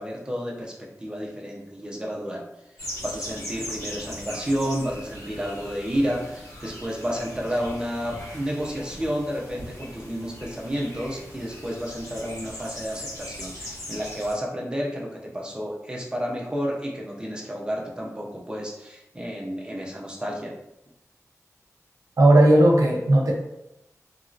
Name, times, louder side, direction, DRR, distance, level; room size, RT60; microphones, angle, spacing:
voice 1, 0.0-2.4 3.0-20.5, equal, 15° right, -1 dB, 0.6 m, -31 dB
sound 1, 2.8-14.3, equal, 75° left, 1.4 m, -39 dB
voice 2, 22.2-23.3, right 1 dB, 70° right, -1 dB, 0.7 m, -16 dB
2.9 x 2.7 x 2.5 m, 0.86 s
wide cardioid pair, 90°, 6 cm